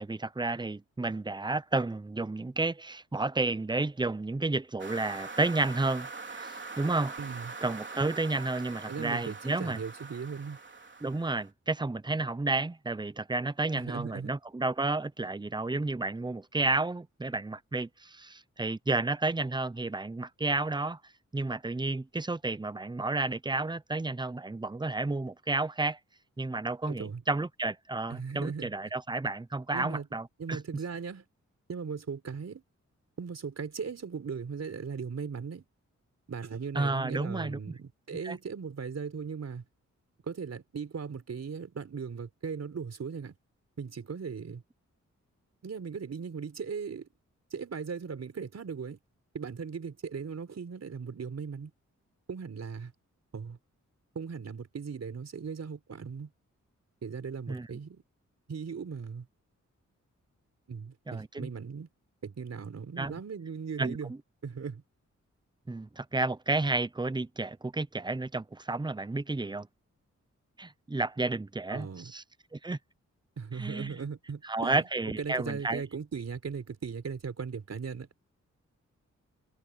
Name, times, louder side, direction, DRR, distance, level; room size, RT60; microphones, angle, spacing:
voice 1, 0.0-7.2 7.6-9.8 11.0-21.0 21.3-26.0 26.4-30.6 36.7-37.7 38.2-38.4 57.5-57.7 61.1-61.5 63.0-63.2 63.8-64.2 65.7-69.7 70.6-72.2 72.5-72.8 73.5-74.0 74.4-75.8, right 2 dB, 15° right, 0.8 m, -31 dB
sound 1, 4.8-11.5, right 4 dB, 40° right, 3.6 m, -43 dB
voice 2, 7.2-7.5 8.9-10.6 13.7-14.3 26.9-27.2 28.1-28.7 29.7-30.1 30.4-31.2 31.7-32.6 33.2-35.6 36.3-39.6 40.3-43.4 43.8-44.6 45.6-47.1 47.5-49.0 49.3-51.7 52.3-52.9 53.3-53.6 54.1-56.3 57.0-58.0 58.5-59.3 60.7-61.9 62.2-64.1 64.4-64.8 71.7-72.1 73.4-78.1, right 6 dB, 60° right, 4.4 m, -38 dB
cardioid pair, 65°, 30 cm